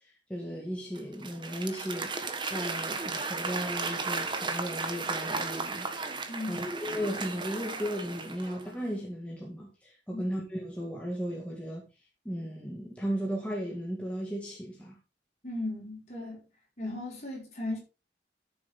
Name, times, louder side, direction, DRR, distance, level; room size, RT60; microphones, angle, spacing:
voice 1, 0.3-6.1 6.5-11.8 12.3-15.0, equal, 5° left, 2.0 m, -36 dB
Applause / Crowd, 0.9-8.7, right 4 dB, 25° right, 1.2 m, -35 dB
voice 2, 6.3-6.7 10.1-10.2 15.4-16.4 16.8-17.8, left 2 dB, 40° left, 4.9 m, -36 dB
13.0 x 7.1 x 3.7 m
head